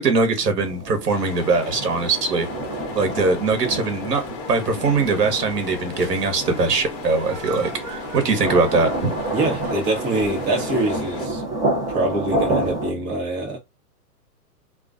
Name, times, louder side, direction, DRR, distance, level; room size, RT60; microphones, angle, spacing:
voice 1, 0.0-2.5 2.9-4.2 4.5-9.1, right 4 dB, 90° right, 1.0 m, -21 dB
sound 1, 0.6-12.9, right 1 dB, 10° right, 0.6 m, -29 dB
sound 2, 1.1-11.3, left 5 dB, 35° left, 0.8 m, -36 dB
sound 3, 5.0-11.1, right 8 dB, 55° right, 0.7 m, -40 dB
voice 2, 9.3-11.4 11.9-13.6, right 2 dB, 35° right, 1.0 m, -24 dB
2.3 x 2.3 x 2.4 m
hypercardioid pair, 130°, 47 cm